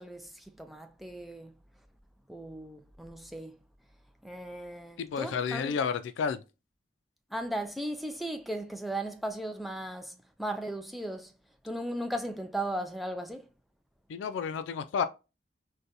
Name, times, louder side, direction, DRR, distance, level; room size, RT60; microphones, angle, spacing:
voice 1, 0.0-1.5 2.3-3.6 4.2-5.8 7.3-11.3 11.6-13.5, right 1 dB, ahead, 0.3 m, -37 dB
voice 2, 5.0-6.4 14.1-15.0, left 6 dB, 85° left, 0.3 m, -31 dB
4.0 x 2.2 x 2.5 m
head